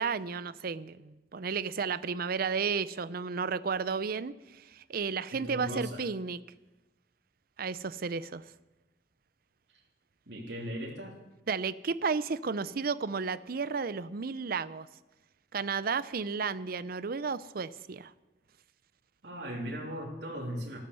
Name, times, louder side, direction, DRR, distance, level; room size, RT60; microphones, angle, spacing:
voice 1, 0.0-6.4 7.6-8.4 11.5-14.9 15.5-18.1, right 5 dB, 55° right, 16 dB, 0.6 m, -33 dB
voice 2, 5.3-6.0 10.3-11.2 19.2-20.8, equal, 70° right, -2 dB, 3.2 m, -38 dB
13.0 x 13.0 x 6.9 m, 1.0 s
head